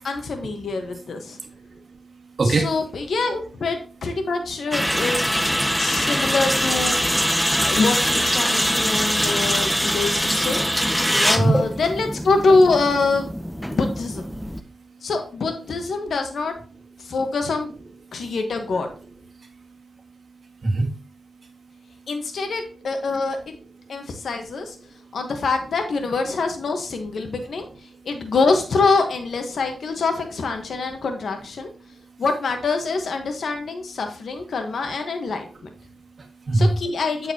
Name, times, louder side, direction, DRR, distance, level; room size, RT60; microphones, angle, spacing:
voice 1, 0.0-1.4 2.4-5.3 5.8-7.1 7.6-10.6 11.2-13.3 13.7-14.3 15.0-16.6 17.0-17.7 18.1-18.9 22.1-23.6 23.9-24.8 25.1-27.7 28.0-31.7 32.2-35.5 36.5-37.3, left 3 dB, 70° left, 5 dB, 1.2 m, -24 dB
voice 2, 1.3-2.7 7.0-7.8 11.0-11.6 13.7-13.8 14.3-15.1 17.0-17.1 18.1-18.4 19.3-22.1 23.8-24.2 24.9-25.2 27.9-28.1 31.9-32.2 35.9-36.8, right 2 dB, 50° right, 2 dB, 1.7 m, -29 dB
sound 1, 4.7-14.6, equal, ahead, 0.6 m, -23 dB
8.1 x 6.8 x 2.8 m, 0.37 s
cardioid pair, 75°, 0 cm